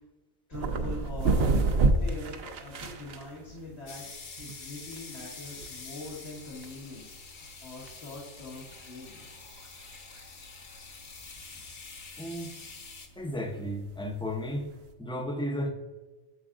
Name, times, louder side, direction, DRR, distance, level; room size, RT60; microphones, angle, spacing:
voice 1, 0.5-1.6 2.0-4.0 4.4-9.4, left 2 dB, 70° left, -8 dB, 1.9 m, -43 dB
sound 1, 0.5-14.9, right 3 dB, 65° right, 0.9 m, -32 dB
sound 2, 3.9-13.1, left 4 dB, 50° left, 0.9 m, -46 dB
voice 2, 12.2-12.5 13.2-14.7 15.0-15.7, equal, 5° left, 4 dB, 0.5 m, -33 dB
9.1 x 6.9 x 2.5 m, 1.2 s
omnidirectional pair, 1.1 m